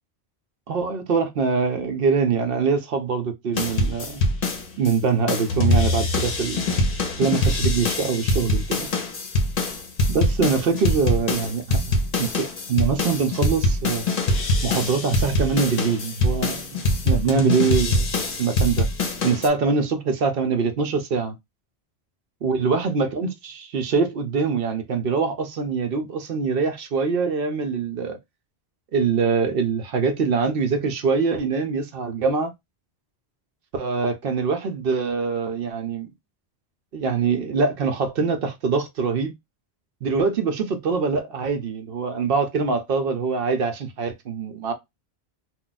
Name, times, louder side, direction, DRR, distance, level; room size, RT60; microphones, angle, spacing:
voice 1, 0.7-4.2 4.8-8.9 10.1-14.0 14.6-18.0 18.4-18.9 19.2-21.4 22.4-28.2 28.9-32.5 33.7-36.1 36.9-39.3 40.0-44.7, right 5 dB, 65° right, 0.8 m, -24 dB
sound 1, 3.6-5.0 5.3-19.5, left 2 dB, 55° left, 0.8 m, -24 dB
2.3 x 2.3 x 3.9 m
omnidirectional pair, 1.1 m